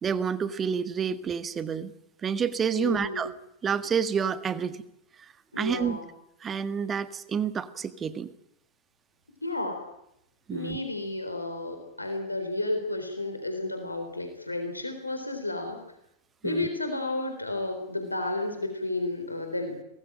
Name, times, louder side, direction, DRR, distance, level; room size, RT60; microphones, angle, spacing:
voice 1, 0.0-1.9 2.2-3.3 3.6-4.8 5.2-6.0 6.4-8.3 10.5-10.8 16.4-16.7, right 7 dB, 20° right, 13 dB, 1.6 m, -29 dB
voice 2, 2.8-3.3 5.5-6.1 9.4-9.9 10.5-15.8 16.4-19.8, left 2 dB, 85° left, 6 dB, 3.9 m, -32 dB
23.5 x 19.5 x 8.9 m, 0.79 s
figure-of-eight pair, 90°, 0 cm